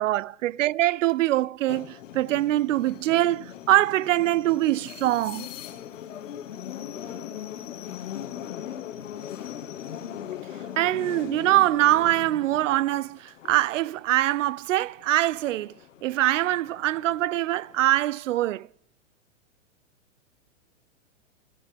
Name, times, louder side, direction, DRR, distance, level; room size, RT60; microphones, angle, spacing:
voice 1, 0.0-5.5 10.8-15.7 16.0-18.7, right 15 dB, 75° right, 0.5 m, -23 dB
sound 1, 1.7-14.4 14.8-18.0, left 10 dB, 75° left, 1.6 m, -40 dB
27.5 x 13.5 x 3.4 m
hypercardioid pair, 130°, 38 cm